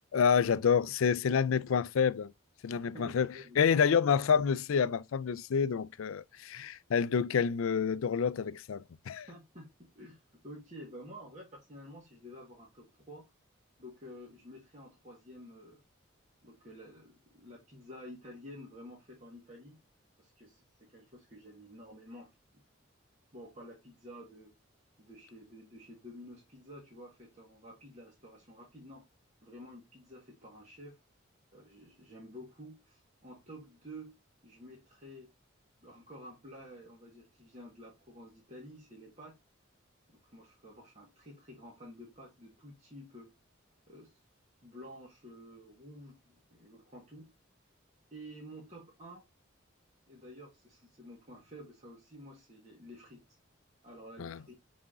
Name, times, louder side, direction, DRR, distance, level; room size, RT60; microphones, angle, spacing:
voice 1, 0.1-2.3 2.6-9.3 54.2-54.4, left 6 dB, 85° left, 0.4 m, -28 dB
voice 2, 2.7-4.2 9.3-13.3 13.8-15.8 16.4-19.8 20.2-22.3 23.3-24.5 25.0-29.0 29.4-31.0 31.5-34.1 34.4-35.3 35.8-39.4 40.1-43.3 43.9-44.1 44.6-47.3 48.1-49.2 50.1-53.2 53.8-54.5, equal, 35° right, 1.7 m, -51 dB
5.9 x 4.3 x 3.6 m
head